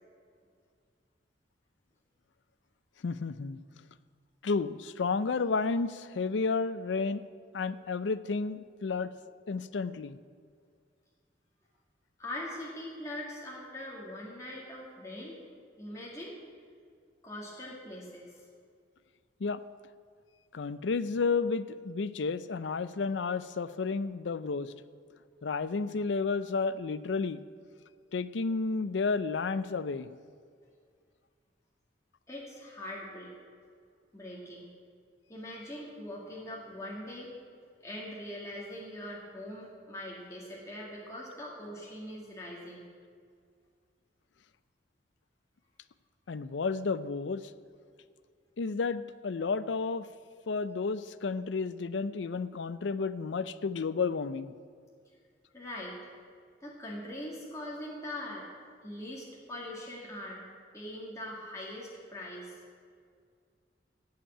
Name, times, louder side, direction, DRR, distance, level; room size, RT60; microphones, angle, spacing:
voice 1, 3.0-3.6 4.4-7.2 7.5-9.1 9.5-10.2 19.4-19.6 20.5-24.7 25.4-27.4 28.1-30.1 46.3-47.4 48.6-50.1 50.5-54.5, left 4 dB, 80° left, 14 dB, 0.5 m, -31 dB
voice 2, 12.2-15.4 15.8-16.4 17.2-18.3 32.3-33.3 34.1-34.7 35.3-37.3 37.8-42.8 55.5-56.0 56.6-58.4 58.8-60.5 60.7-62.6, left 1 dB, 15° left, -4 dB, 2.0 m, -42 dB
16.0 x 5.8 x 8.6 m, 2.1 s
head